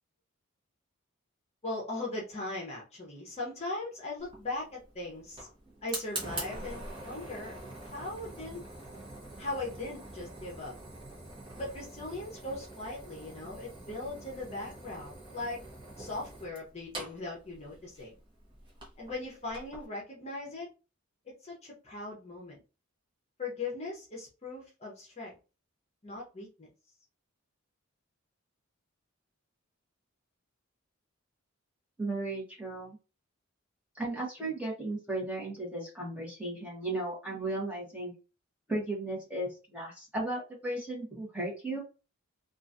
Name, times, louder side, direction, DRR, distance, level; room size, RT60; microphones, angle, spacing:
voice 1, 1.6-5.5 5.8-8.6 9.4-10.7 11.6-15.6 16.0-18.2 19.0-20.7 21.2-22.6 23.4-25.4 26.0-26.7, left 2 dB, 30° left, -2 dB, 0.9 m, -39 dB
Fire, 4.2-19.9, right 2 dB, 25° right, 1.0 m, -45 dB
voice 2, 32.0-33.0 34.0-38.1 38.7-41.8, right 2 dB, 5° right, -3 dB, 1.2 m, -35 dB
3.0 x 2.5 x 2.6 m, 0.31 s
head